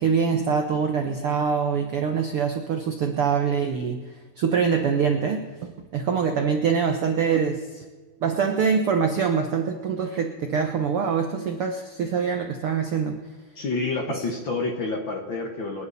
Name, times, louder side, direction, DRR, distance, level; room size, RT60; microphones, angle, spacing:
voice 1, 0.0-4.1 4.4-7.8 8.2-13.1, right 6 dB, 90° right, 5 dB, 1.2 m, -24 dB
voice 2, 13.5-15.9, left 3 dB, 50° left, 3 dB, 1.6 m, -28 dB
27.5 x 11.0 x 4.2 m, 1.4 s
omnidirectional pair, 4.2 m